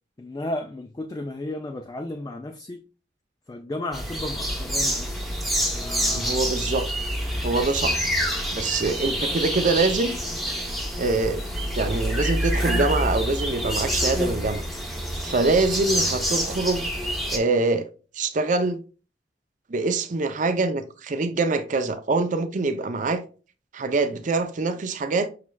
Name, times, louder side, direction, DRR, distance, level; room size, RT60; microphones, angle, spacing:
voice 1, 0.2-2.8 3.5-5.2 5.7-6.4, left 1 dB, 20° left, 0.3 m, -34 dB
sound 1, 3.9-17.4, equal, ahead, 0.7 m, -27 dB
voice 2, 6.1-6.9 7.4-8.0 8.5-10.2 11.0-11.4 11.7-14.6 15.2-16.9 17.3-17.9 18.1-18.8 19.7-23.2 23.7-25.3, right 3 dB, 45° right, 0.5 m, -24 dB
5.8 x 3.1 x 2.2 m
head